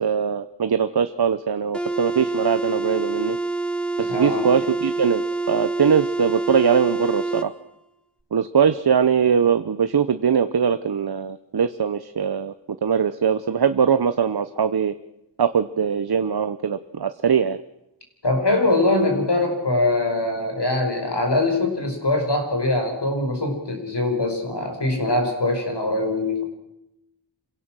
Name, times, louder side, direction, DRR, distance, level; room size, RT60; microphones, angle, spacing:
voice 1, 0.0-3.4 4.0-7.5 8.3-12.5 12.8-14.9 15.4-17.6, right 7 dB, 60° right, 12 dB, 0.8 m, -21 dB
sound 1, 1.7-7.5, right 3 dB, ahead, 1.4 m, -26 dB
voice 2, 4.1-4.5 18.2-26.4, left 2 dB, 65° left, 4 dB, 5.2 m, -22 dB
27.0 x 17.0 x 6.2 m, 0.85 s
wide cardioid pair, 70°, 43 cm